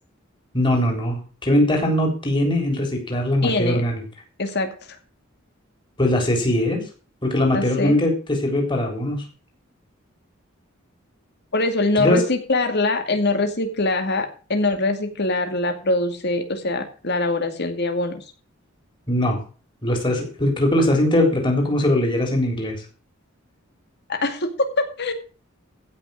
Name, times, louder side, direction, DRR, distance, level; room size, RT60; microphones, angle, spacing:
voice 1, 0.5-4.0 6.0-6.8 7.2-9.2 12.0-12.2 19.1-19.4 19.8-22.8, left 1 dB, 25° left, 2 dB, 3.8 m, -21 dB
voice 2, 3.4-3.8 4.4-4.7 7.5-8.0 11.5-18.2 24.1-25.1, left 2 dB, 55° left, 6 dB, 2.3 m, -23 dB
15.5 x 6.0 x 6.4 m, 0.38 s
head